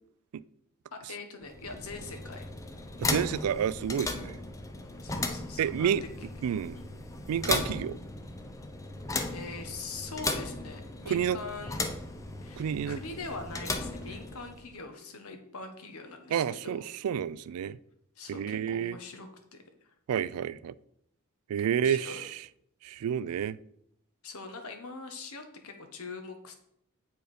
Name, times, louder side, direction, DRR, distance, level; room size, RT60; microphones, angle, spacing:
voice 1, 0.9-2.4 2.8-2.9 5.0-6.1 6.7-6.8 9.3-11.9 12.4-16.8 18.1-19.9 21.8-22.3 24.2-26.5, left 3 dB, 85° left, 1.2 m, -43 dB
sound 1, 1.4-14.7, left 2 dB, 15° left, 0.5 m, -36 dB
voice 2, 3.0-4.4 5.6-6.0 6.4-6.8 7.3-8.0 11.1-11.4 12.6-13.0 16.3-17.8 18.3-19.0 20.1-20.8 21.5-22.4 22.8-23.6, right 8 dB, 85° right, 0.3 m, -30 dB
7.7 x 4.7 x 5.0 m
head